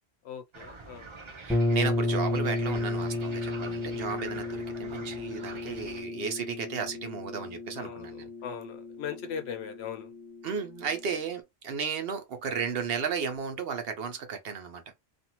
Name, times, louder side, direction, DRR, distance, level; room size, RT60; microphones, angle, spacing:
voice 1, 0.2-1.1 7.8-10.1, left 8 dB, 85° left, 0.9 m, -39 dB
sound 1, 0.5-6.0, right 3 dB, 35° right, 0.5 m, -45 dB
voice 2, 1.4-8.3 10.4-14.8, right 6 dB, 70° right, 0.9 m, -34 dB
sound 2, 1.5-11.2, left 2 dB, ahead, 1.1 m, -33 dB
2.6 x 2.5 x 2.8 m
omnidirectional pair, 1.1 m